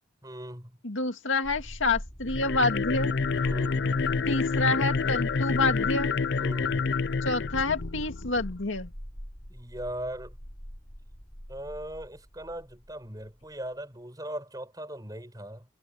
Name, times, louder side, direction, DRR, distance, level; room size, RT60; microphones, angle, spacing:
voice 1, 0.2-0.7 3.4-3.9 6.4-6.9 9.5-10.4 11.5-15.7, right 1 dB, 20° right, 7.2 m, -39 dB
voice 2, 0.8-3.1 4.3-6.2 7.2-8.9, left 3 dB, 80° left, 2.2 m, -28 dB
sound 1, 1.4-13.7, equal, 25° left, 6.8 m, -42 dB
sound 2, 2.2-8.5, left 4 dB, 55° left, 0.5 m, -28 dB
head